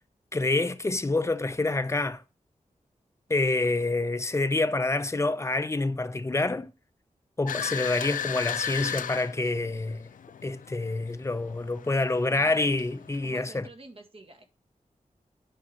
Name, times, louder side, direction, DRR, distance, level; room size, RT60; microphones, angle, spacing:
voice 1, 0.3-2.2 3.3-6.7 7.4-10.1 10.4-13.7, left 2 dB, 20° left, 0.7 m, -27 dB
sound 1, 7.5-13.3, left 8 dB, 85° left, 0.4 m, -36 dB
voice 2, 12.2-12.6 13.2-14.4, right 2 dB, 45° right, 1.9 m, -49 dB
10.5 x 5.4 x 4.0 m
wide cardioid pair, 120°, 13 cm